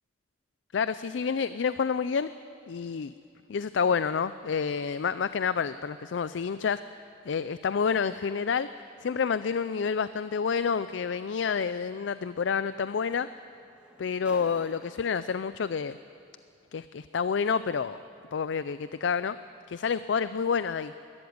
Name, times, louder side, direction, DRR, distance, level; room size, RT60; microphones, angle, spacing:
voice 1, 0.7-2.3 2.7-3.1 3.5-6.8 7.3-8.7 9.0-13.3 14.0-16.0 16.7-18.0 18.3-19.4 19.7-20.9, left 6 dB, 80° left, 14 dB, 0.4 m, -28 dB
sound 1, 10.9-11.0 12.7-12.8 13.1-15.3 16.2-16.3, equal, 5° right, 1.5 m, -53 dB
21.0 x 13.0 x 9.5 m, 2.5 s
head